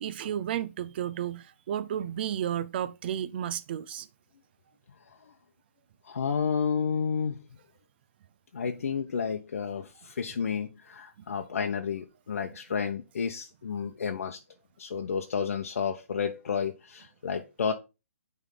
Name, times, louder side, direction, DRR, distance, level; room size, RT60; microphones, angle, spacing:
voice 1, 0.0-4.1 8.6-8.7 13.8-13.9, right 10 dB, 40° right, 0.5 m, -32 dB
voice 2, 6.0-7.4 8.5-14.4 14.8-17.7, left 6 dB, 70° left, 0.8 m, -31 dB
9.2 x 3.5 x 3.9 m
hypercardioid pair, 150°, 8 cm